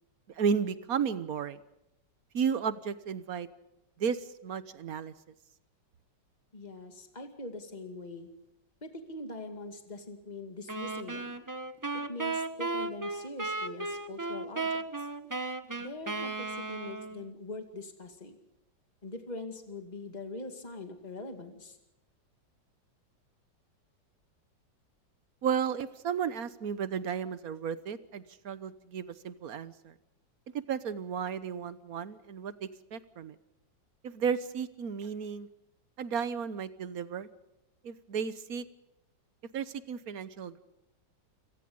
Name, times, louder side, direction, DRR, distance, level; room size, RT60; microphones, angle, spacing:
voice 1, 0.3-1.6 2.3-3.5 4.0-5.1 25.4-29.9 30.7-33.3 34.0-35.5 36.0-37.3 37.8-38.6 39.5-40.6, right 7 dB, 55° right, 14 dB, 1.4 m, -33 dB
voice 2, 6.5-8.3 8.8-11.4 11.9-15.1 15.8-18.4 19.0-21.8, left 2 dB, 25° left, 6 dB, 2.3 m, -43 dB
sound 1, 10.7-17.3, right 3 dB, 25° right, 0.4 m, -35 dB
28.5 x 18.5 x 5.4 m, 0.87 s
omnidirectional pair, 2.0 m